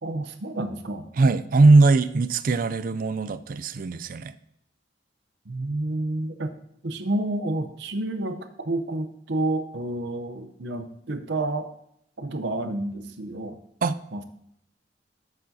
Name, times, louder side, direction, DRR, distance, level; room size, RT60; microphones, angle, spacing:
voice 1, 0.0-1.1 5.5-6.5 6.8-11.7 12.2-13.6 14.1-14.2, right 2 dB, 70° right, 8 dB, 0.7 m, -29 dB
voice 2, 1.2-4.3 13.8-14.0, right 3 dB, 50° right, 15 dB, 0.4 m, -20 dB
13.5 x 7.2 x 2.8 m, 0.73 s
head